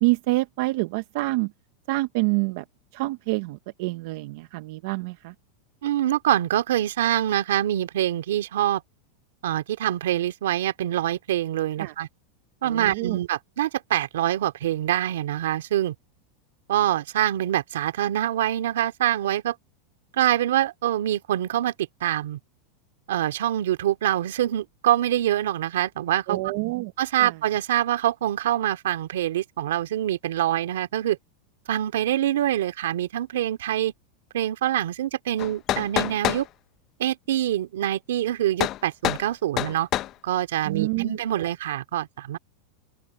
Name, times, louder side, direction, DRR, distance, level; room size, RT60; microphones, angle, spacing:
voice 1, 0.0-1.5 1.9-2.6 2.9-5.3 11.8-11.9 12.6-13.2 26.3-26.9 27.2-27.4 40.6-41.5, right 22 dB, 65° right, 0.9 m, -27 dB
voice 2, 5.8-8.8 9.4-12.1 12.6-15.9 16.7-19.5 20.1-21.7 22.0-22.4 23.1-26.5 27.0-31.2 31.7-33.9 34.3-36.5 37.0-39.9 40.2-42.4, right 12 dB, 90° right, 2.6 m, -25 dB
sound 1, 35.4-36.5 38.6-38.8 39.0-39.3 39.6-40.1, left 14 dB, 40° left, 0.6 m, -26 dB
open air
supercardioid pair, 140°, 0 cm